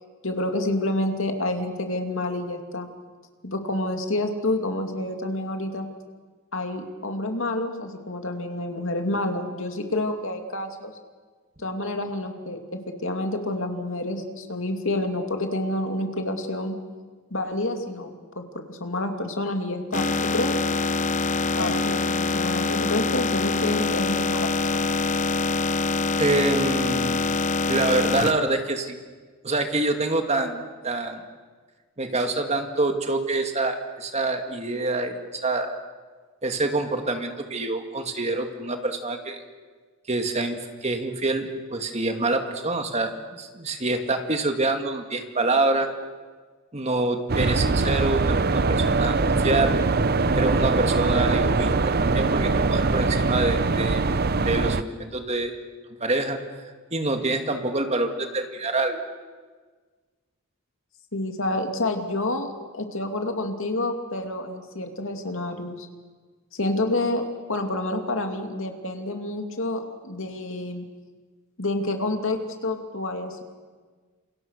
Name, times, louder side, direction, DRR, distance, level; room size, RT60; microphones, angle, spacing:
voice 1, 0.2-2.9 3.4-5.9 6.5-10.9 11.6-16.8 17.3-20.6 21.6-24.9 61.1-65.9 66.5-67.2 67.5-70.8 71.6-73.4, left 2 dB, 60° left, 4 dB, 2.7 m, -28 dB
sound 1, 19.9-28.3, left 3 dB, 35° left, 1.0 m, -24 dB
voice 2, 26.2-27.2 27.7-29.0 29.4-31.2 32.0-35.8 36.4-39.4 40.1-45.9 46.7-49.7 50.4-54.0 54.3-55.6 56.0-56.4 56.9-59.0, right 2 dB, 30° right, 5 dB, 2.0 m, -26 dB
sound 2, 47.3-54.8, right 3 dB, 45° right, 0.8 m, -22 dB
29.0 x 27.5 x 6.6 m, 1.4 s
head